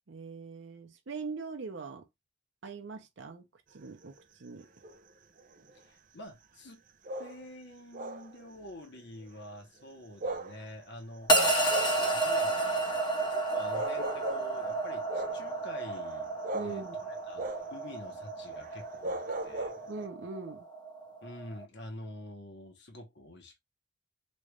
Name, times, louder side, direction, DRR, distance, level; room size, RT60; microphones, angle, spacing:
voice 1, 0.1-2.0 2.6-3.4 3.7-4.7 16.5-17.0 19.9-20.7, right 4 dB, 80° right, 0.7 m, -41 dB
sound 1, 3.8-4.1 4.6-5.0 5.4-5.8 7.0-7.4 7.9-8.7 9.0-9.2 10.1-10.7 11.3-12.2 13.2-13.3 13.7-14.6 15.1-16.9 17.4-17.8 18.1-18.2 18.5-20.1, right 1 dB, 45° right, 0.5 m, -38 dB
voice 2, 5.7-6.8 7.2-11.3 12.1-13.0 13.3-16.3 16.6-16.9 17.3-19.7 21.2-23.6, left 1 dB, 65° left, 1.0 m, -47 dB
sound 2, 11.3-21.6, right 2 dB, 25° left, 0.8 m, -31 dB
3.1 x 2.5 x 3.1 m
head